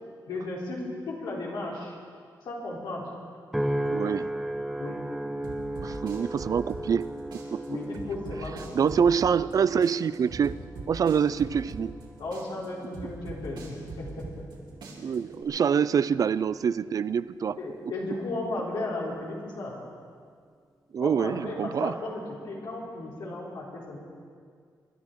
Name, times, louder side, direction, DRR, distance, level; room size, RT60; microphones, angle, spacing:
voice 1, 0.3-2.0 2.4-3.0 4.8-5.0 7.7-8.9 12.2-14.3 14.9-15.2 17.6-19.8 21.0-24.0, left 2 dB, 85° left, -4 dB, 4.0 m, -35 dB
sound 1, 3.5-18.0 18.5-19.0, right 1 dB, 5° right, 0.8 m, -37 dB
voice 2, 3.9-4.3 5.8-7.7 8.7-10.6 10.9-12.0 15.0-17.6 20.9-21.9, right 7 dB, 50° right, 17 dB, 0.4 m, -26 dB
sound 2, 5.4-7.0 7.3-9.5 9.8-12.0 12.3-14.5 14.8-15.4, right 3 dB, 85° right, 3.3 m, -41 dB
24.0 x 12.0 x 4.6 m, 2.1 s
cardioid pair, 105°, 7 cm